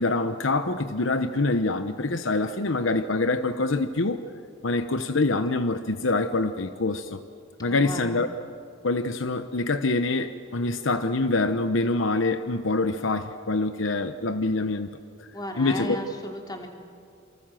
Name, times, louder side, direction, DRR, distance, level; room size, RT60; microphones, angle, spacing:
voice 1, 0.0-4.2 4.6-7.2 7.6-8.3 8.8-14.9 15.2-15.3 15.6-16.0, left 3 dB, 70° left, 10 dB, 0.9 m, -25 dB
voice 2, 7.7-8.2 15.3-16.7, left 1 dB, 20° left, 3 dB, 2.9 m, -35 dB
28.0 x 25.0 x 7.6 m, 2.4 s
head